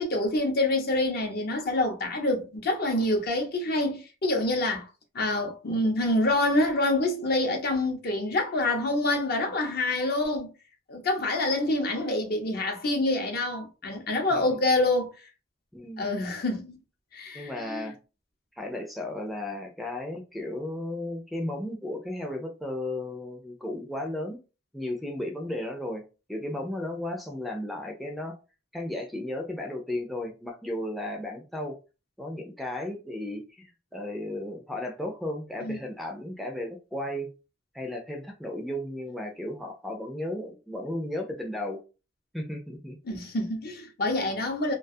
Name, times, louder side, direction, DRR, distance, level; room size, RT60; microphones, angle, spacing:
voice 1, 0.0-4.9 5.1-10.5 10.9-15.1 16.0-16.8 17.1-17.9 35.6-35.8 43.0-44.7, left 2 dB, 55° left, 0.7 m, -26 dB
voice 2, 15.7-16.1 17.3-18.0 18.6-24.4 24.7-26.0 26.3-28.3 28.7-31.7 32.2-37.3 37.7-41.8 42.3-43.0, left 1 dB, ahead, 0.4 m, -34 dB
2.3 x 2.3 x 2.5 m
head